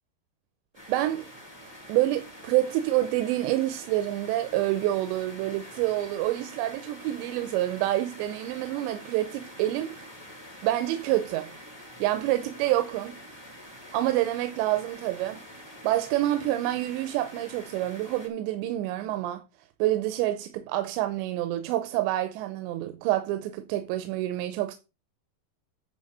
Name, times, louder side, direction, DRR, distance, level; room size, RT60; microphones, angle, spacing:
sound 1, 0.7-18.3, equal, 10° left, 1.2 m, -46 dB
voice 1, 0.9-1.3 1.9-10.0 10.6-11.5 12.0-13.2 13.9-15.4 15.8-19.4 19.8-24.8, right 14 dB, 90° right, 3.0 m, -27 dB
10.0 x 4.0 x 6.7 m
omnidirectional pair, 5.0 m